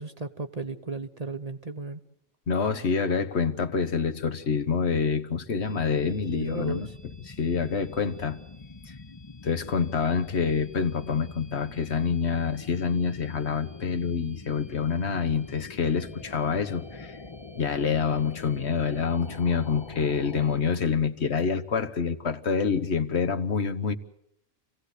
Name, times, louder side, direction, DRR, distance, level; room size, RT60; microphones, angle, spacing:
voice 1, 0.0-2.0 6.3-6.9, right 3 dB, 35° right, 1.0 m, -35 dB
voice 2, 2.5-6.9 7.3-8.4 8.9-9.0 9.4-17.2 17.6-23.9, left 5 dB, 60° left, 1.4 m, -27 dB
sound 1, 5.6-20.6, left 3 dB, 25° left, 0.9 m, -44 dB
27.5 x 16.5 x 8.3 m
omnidirectional pair, 1.3 m